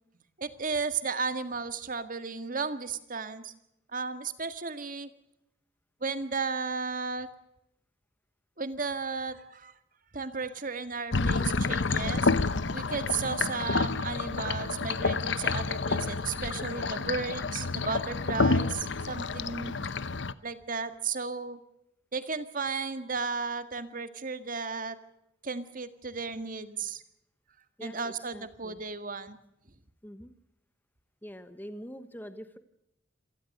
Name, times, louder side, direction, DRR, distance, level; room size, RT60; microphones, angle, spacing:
voice 1, 0.4-3.5 3.9-5.1 6.0-7.3 8.6-9.7 10.1-12.3 12.7-19.7 20.4-21.6 22.1-25.0 25.4-27.0 27.8-29.4, right 4 dB, 45° right, 11 dB, 1.8 m, -34 dB
sound 1, 11.1-20.3, left 3 dB, 65° left, 0.9 m, -29 dB
voice 2, 27.8-28.8 30.0-30.3 31.2-32.6, equal, 10° left, 10 dB, 1.1 m, -44 dB
27.0 x 18.5 x 6.6 m, 0.83 s
head